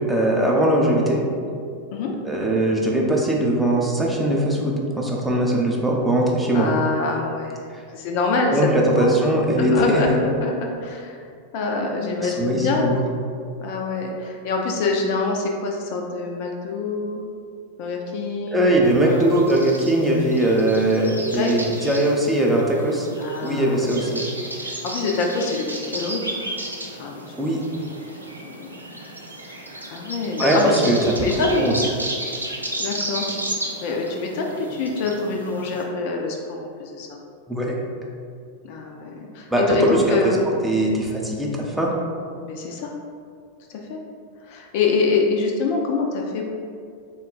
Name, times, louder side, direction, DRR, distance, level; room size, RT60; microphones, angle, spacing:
voice 1, 0.1-1.2 2.2-6.7 8.5-10.0 12.2-12.9 18.5-23.1 23.4-24.2 27.4-27.6 30.4-31.0 31.6-31.7 37.5-37.7 39.5-40.2 40.6-41.9, right 1 dB, 5° right, -3 dB, 0.5 m, -20 dB
voice 2, 6.5-8.7 9.0-9.1 9.6-11.2 11.5-12.9 13.6-17.2 17.8-18.6 19.0-19.4 21.1-21.7 23.2-24.3 24.5-26.4 26.9-27.5 28.2-28.7 29.9-31.7 32.8-33.3 33.6-37.1 38.6-40.5 42.4-42.9 43.7-44.0 44.5-46.5, left 4 dB, 45° left, 1 dB, 0.4 m, -25 dB
sound 1, 18.8-35.8, right 1 dB, 85° right, 0.4 m, -33 dB
3.7 x 2.2 x 3.8 m, 2.3 s
figure-of-eight pair, 90°, 0 cm